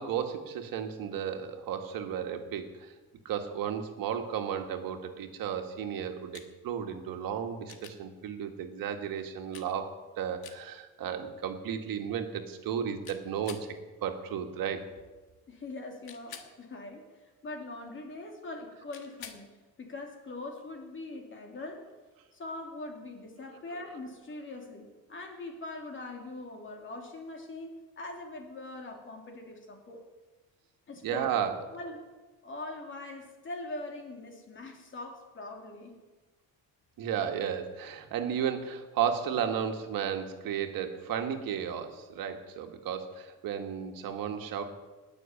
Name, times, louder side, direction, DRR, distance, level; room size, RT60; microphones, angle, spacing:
voice 1, 0.0-2.9 3.3-13.7 14.0-14.8 31.0-31.6 37.0-44.6, right 8 dB, 70° right, 5 dB, 1.9 m, -34 dB
sound 1, 6.3-6.5 7.7-8.0 9.5-9.7 10.4-10.6 13.1-13.7 16.1-16.5 18.9-19.4 21.7-21.8, left 9 dB, 85° left, 1.7 m, -47 dB
voice 2, 15.5-21.9 22.3-30.1 30.9-31.4 31.7-32.1 32.4-35.9, left 2 dB, 35° left, 3 dB, 2.8 m, -42 dB
19.5 x 6.8 x 8.6 m, 1.2 s
cardioid pair, 140°, 35 cm